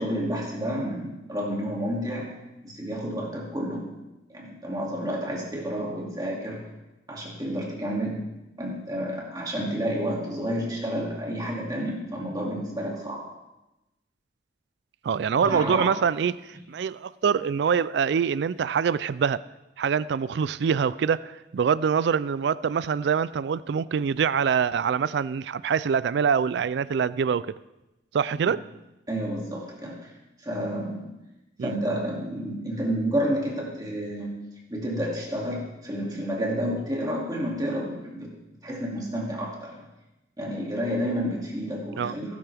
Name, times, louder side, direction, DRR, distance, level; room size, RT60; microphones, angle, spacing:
voice 1, 0.0-2.3 2.6-3.9 4.3-6.6 7.1-8.2 8.6-13.3 15.4-15.9 28.5-28.6 29.1-30.1 30.4-31.1 31.6-34.4 34.7-38.3 38.6-39.9 40.4-42.4, equal, 20° right, 2.4 m, -30 dB
voice 2, 15.0-19.4 19.8-27.5 28.1-28.6 31.6-31.7 42.0-42.1, right 7 dB, 65° right, 0.3 m, -25 dB
17.5 x 10.0 x 3.5 m
head